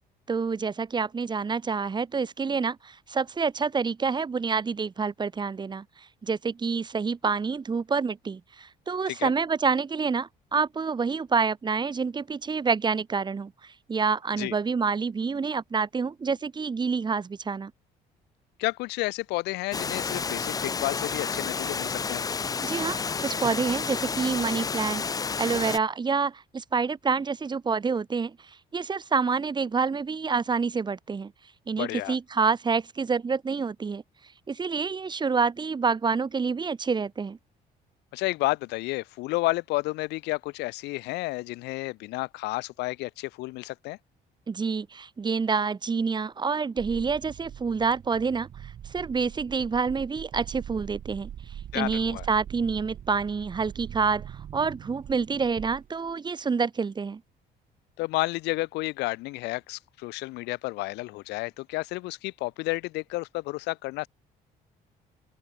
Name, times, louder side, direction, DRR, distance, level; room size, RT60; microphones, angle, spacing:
voice 1, 0.3-5.8 6.2-17.7 22.6-25.0 25.4-28.4 28.7-31.3 31.7-34.0 34.5-37.4 44.5-51.3 51.7-57.2, right 5 dB, 25° right, 1.4 m, -27 dB
voice 2, 18.6-22.2 31.8-32.2 38.1-44.0 51.7-52.3 58.0-64.1, left 21 dB, 90° left, 0.9 m, -31 dB
Water, 19.7-25.8, left 5 dB, 20° left, 0.5 m, -30 dB
sound 1, 46.8-56.1, right 10 dB, 55° right, 5.2 m, -42 dB
open air
cardioid pair, 110°, 17 cm